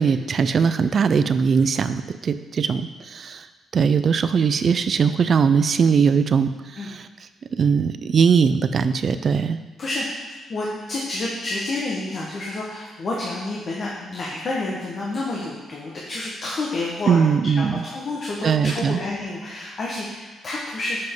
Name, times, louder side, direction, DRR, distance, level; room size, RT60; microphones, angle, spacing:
voice 1, 0.0-3.5 3.7-7.1 7.6-9.6 17.1-17.8 18.4-19.0, right 6 dB, 50° right, 11 dB, 0.4 m, -20 dB
voice 2, 10.5-21.0, left 2 dB, 50° left, -4 dB, 1.3 m, -29 dB
7.6 x 5.7 x 3.8 m, 1.4 s
cardioid pair, 90°, 0 cm